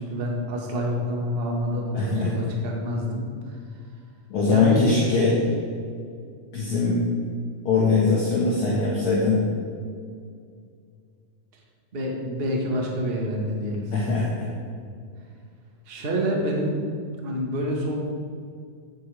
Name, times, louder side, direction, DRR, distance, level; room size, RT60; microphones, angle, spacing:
voice 1, 0.0-3.6 4.5-5.2 11.9-13.9 15.8-16.8 17.2-18.0, equal, 75° right, -1 dB, 0.5 m, -27 dB
voice 2, 1.9-2.3 4.3-5.4 6.5-7.0 7.7-9.4 13.9-14.5, left 4 dB, 50° left, -4 dB, 1.7 m, -21 dB
16.0 x 8.9 x 3.5 m, 2.2 s
omnidirectional pair, 4.2 m